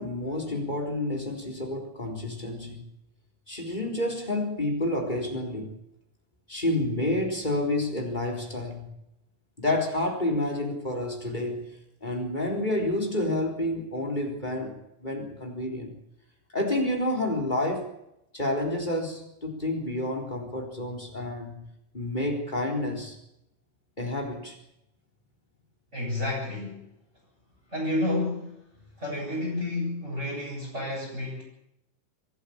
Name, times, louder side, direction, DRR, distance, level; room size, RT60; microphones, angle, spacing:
voice 1, 0.0-2.8 3.5-5.7 6.5-8.9 9.6-11.7 12.0-14.7 15.0-15.9 16.5-17.9 18.3-21.6 21.9-23.1 24.0-24.6, left 1 dB, 10° left, 3 dB, 3.8 m, -29 dB
voice 2, 25.9-26.8 27.7-28.6 29.0-31.4, left 1 dB, 20° right, -5 dB, 8.2 m, -30 dB
25.5 x 11.5 x 8.7 m, 0.82 s
omnidirectional pair, 4.1 m